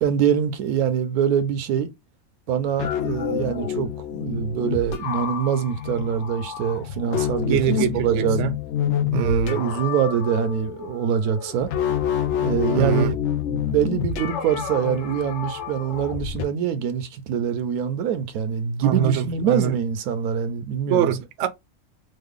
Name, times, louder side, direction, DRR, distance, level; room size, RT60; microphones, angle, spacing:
voice 1, 0.0-1.9 2.5-7.8 8.0-8.4 9.1-11.7 12.4-13.1 13.5-21.1, right 8 dB, 85° right, 1.1 m, -24 dB
sound 1, 2.5-16.4, left 9 dB, 65° left, 0.7 m, -28 dB
voice 2, 7.5-8.5 9.1-9.6 12.7-13.1 18.8-19.7 20.9-21.5, right 8 dB, 65° right, 0.8 m, -23 dB
3.2 x 2.0 x 3.5 m
omnidirectional pair, 1.6 m